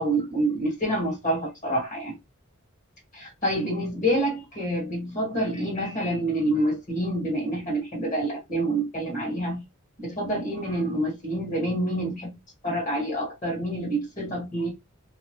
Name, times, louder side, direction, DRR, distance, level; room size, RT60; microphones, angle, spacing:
voice 1, 0.0-2.1 3.1-9.6 10.0-12.3 12.6-14.7, right 1 dB, 35° left, 1.3 m, -27 dB
2.8 x 2.0 x 2.8 m
head